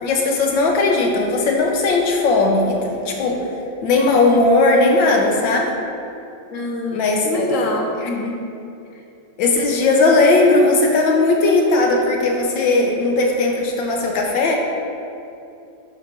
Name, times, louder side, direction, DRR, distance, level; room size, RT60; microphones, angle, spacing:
voice 1, 0.0-3.5 3.8-5.7 6.9-7.3 8.0-8.3 9.4-14.6, left 3 dB, 80° left, 0 dB, 1.7 m, -17 dB
voice 2, 6.5-7.9, left 2 dB, 45° left, -2 dB, 1.5 m, -24 dB
11.5 x 9.5 x 2.6 m, 2.7 s
omnidirectional pair, 2.1 m